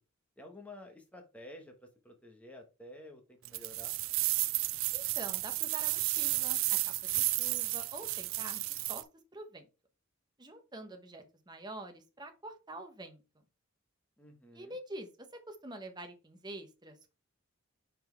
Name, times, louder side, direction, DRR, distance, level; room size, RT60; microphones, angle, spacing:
voice 1, 0.4-1.7 2.0-3.9 14.2-14.7, left 1 dB, 5° left, 3 dB, 1.1 m, -51 dB
sound 1, 3.4-9.0, right 19 dB, 70° right, 0.4 m, -32 dB
voice 2, 4.9-9.0 9.3-9.7 10.4-13.2 14.5-17.1, right 2 dB, 20° right, 5 dB, 1.0 m, -46 dB
5.3 x 4.3 x 4.5 m, 0.30 s
head